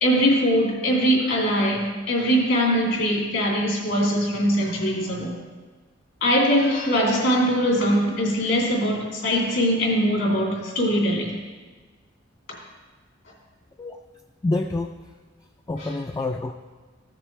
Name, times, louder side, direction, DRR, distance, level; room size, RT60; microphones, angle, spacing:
voice 1, 0.0-5.4 6.2-11.3 15.8-16.0, equal, 70° left, -3 dB, 2.9 m, -22 dB
voice 2, 14.4-14.9 15.7-16.5, left 2 dB, 20° left, 4 dB, 0.3 m, -26 dB
14.5 x 6.7 x 3.1 m, 1.4 s
head